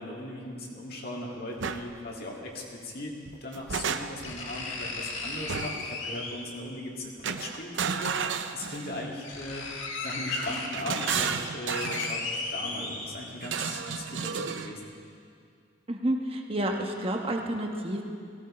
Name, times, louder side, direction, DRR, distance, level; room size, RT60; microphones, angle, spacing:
voice 1, 0.0-3.1 3.4-9.6 10.0-14.8, left 1 dB, 50° left, -2 dB, 2.2 m, -38 dB
sound 1, 1.6-1.8 3.3-4.4 5.5-5.9 7.2-9.1 10.4-12.2 13.4-14.8, right 6 dB, 65° right, 0.6 m, -32 dB
sound 2, 1.8-1.9 3.3-3.4 4.2-6.6 7.9-8.0 8.7-8.8 9.0-13.4 13.9-14.0, left 3 dB, 70° left, 1.8 m, -36 dB
voice 2, 15.9-18.0, right 1 dB, 30° right, 2 dB, 1.2 m, -30 dB
17.5 x 16.0 x 4.3 m, 2.3 s
head